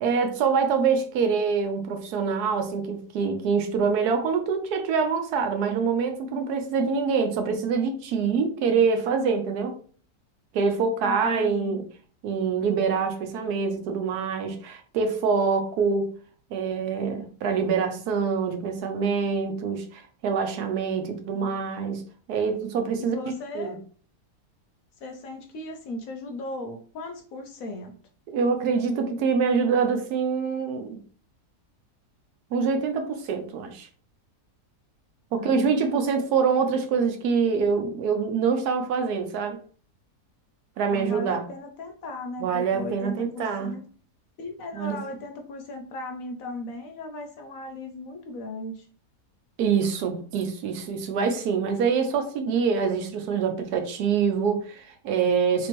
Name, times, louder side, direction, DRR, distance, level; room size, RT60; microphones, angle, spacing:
voice 1, 0.0-9.7 10.5-11.8 12.2-16.1 16.5-22.0 22.3-23.8 28.3-31.0 32.5-33.9 35.3-39.6 40.8-41.4 42.4-43.8 44.7-45.0 49.6-55.7, right 5 dB, 75° right, 1.1 m, -25 dB
voice 2, 11.0-11.8 21.3-21.6 23.0-23.8 25.0-28.0 35.4-36.3 40.9-43.8 44.4-48.9, left 2 dB, 65° left, 0.9 m, -37 dB
3.5 x 2.9 x 2.9 m
omnidirectional pair, 1.7 m